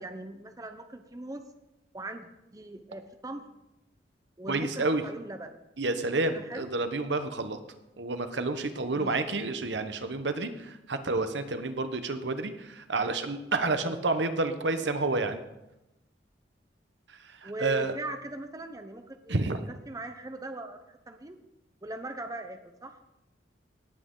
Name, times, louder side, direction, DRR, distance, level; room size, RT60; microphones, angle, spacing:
voice 1, 0.0-1.4 1.9-3.5 4.4-5.6 6.3-6.7 8.9-9.1 13.8-14.0 17.4-21.4 21.8-23.0, right 1 dB, 20° right, 7 dB, 0.7 m, -40 dB
voice 2, 4.5-5.0 5.8-7.6 8.0-15.4 17.3-17.9 19.3-19.6, right 3 dB, 75° right, 9 dB, 1.1 m, -29 dB
17.5 x 8.6 x 3.9 m, 0.93 s
head